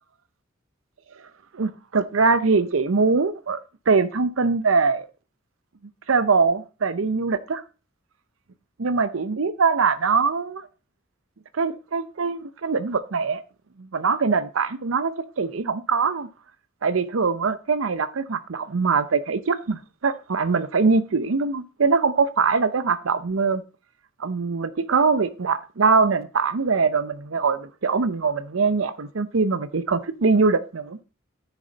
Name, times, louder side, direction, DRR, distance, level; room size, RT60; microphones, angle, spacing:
voice 1, 1.5-3.6 3.9-5.1 6.1-7.6 8.8-10.7 11.5-13.4 13.8-16.3 16.8-23.6 24.2-31.0, right 4 dB, 75° right, 0.7 m, -22 dB
9.9 x 9.2 x 4.0 m
head